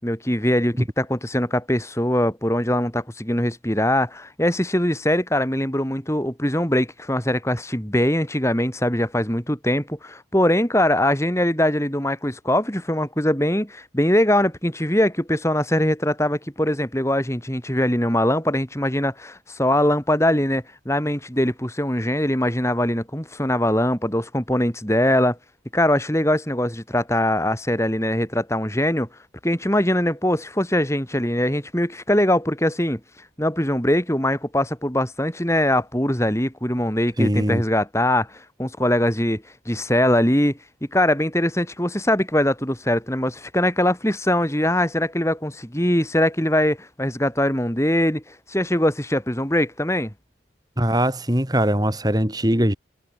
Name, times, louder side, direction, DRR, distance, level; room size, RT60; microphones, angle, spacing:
voice 1, 0.0-25.4 25.7-29.1 29.4-33.0 33.4-40.6 40.9-50.1, left 1 dB, 15° left, 4.4 m, -22 dB
voice 2, 37.2-37.6 50.8-52.7, equal, 20° right, 4.1 m, -21 dB
head